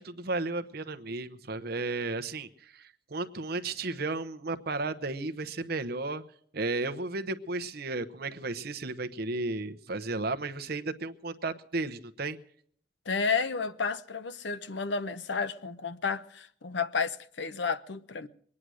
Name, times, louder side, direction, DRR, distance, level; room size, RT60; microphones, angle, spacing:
voice 1, 0.0-6.2 6.5-12.4, right 3 dB, 55° right, 0.9 m, -34 dB
voice 2, 13.1-18.3, left 5 dB, 70° left, 0.8 m, -31 dB
22.5 x 9.8 x 6.3 m
head